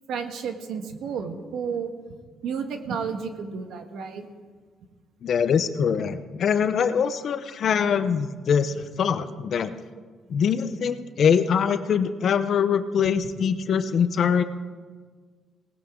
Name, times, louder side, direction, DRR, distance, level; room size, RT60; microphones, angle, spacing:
voice 1, 0.1-1.9 2.4-4.3, right 6 dB, 80° right, 5 dB, 1.6 m, -31 dB
voice 2, 5.2-9.7 10.3-14.4, left 7 dB, 60° left, 11 dB, 0.9 m, -23 dB
19.5 x 18.0 x 3.9 m, 1.5 s
cardioid pair, 95°, 0 cm